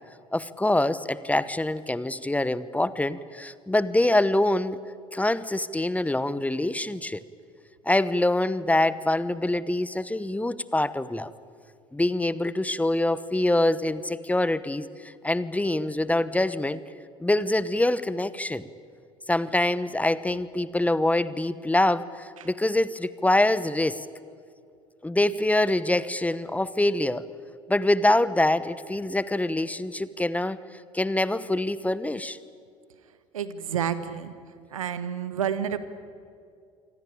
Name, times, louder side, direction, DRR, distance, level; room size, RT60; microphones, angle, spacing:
voice 1, 0.3-4.8 5.1-7.2 7.8-11.3 11.9-16.8 17.2-18.7 19.3-24.1 25.0-27.3 27.7-30.6 30.9-32.4, left 1 dB, 10° left, 17 dB, 1.0 m, -25 dB
voice 2, 33.3-34.3 34.7-35.8, right 8 dB, 75° right, 14 dB, 1.3 m, -29 dB
26.5 x 24.5 x 8.8 m, 2.3 s
figure-of-eight pair, 65°, 17 cm